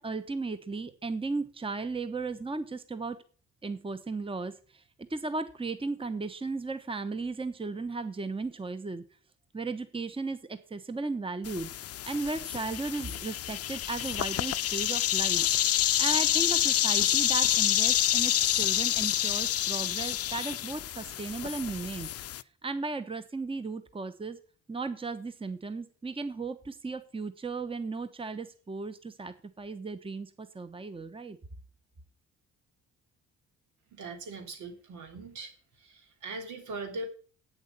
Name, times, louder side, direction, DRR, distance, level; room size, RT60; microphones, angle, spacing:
voice 1, 0.0-3.2 3.6-4.8 5.1-9.0 9.5-11.7 12.0-15.4 16.0-22.1 22.6-24.4 24.7-31.4, right 3 dB, 20° right, 11 dB, 1.1 m, -35 dB
sound 1, 11.4-22.4, left 12 dB, 55° left, 0.6 m, -28 dB
voice 2, 33.9-35.5 35.8-37.1, right 2 dB, 80° right, 5 dB, 3.3 m, -40 dB
8.8 x 7.2 x 8.2 m, 0.41 s
cardioid pair, 90°, 30 cm